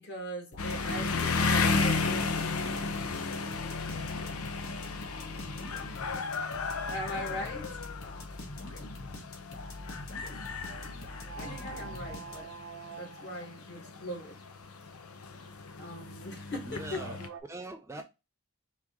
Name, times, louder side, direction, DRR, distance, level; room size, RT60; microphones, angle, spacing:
voice 1, 0.0-2.5 6.9-7.8 11.3-12.5 13.0-14.4 15.8-17.0 17.9-18.0, equal, 50° left, 1.4 m, -40 dB
sound 1, 0.5-12.7, left 1 dB, 65° left, 1.2 m, -44 dB
sound 2, 0.6-17.3, left 4 dB, 85° left, 0.7 m, -34 dB
sound 3, 10.6-17.4, right 5 dB, 75° right, 0.8 m, -49 dB
voice 2, 16.7-17.2 17.5-18.0, right 2 dB, 15° right, 0.4 m, -42 dB
4.7 x 2.8 x 3.5 m
head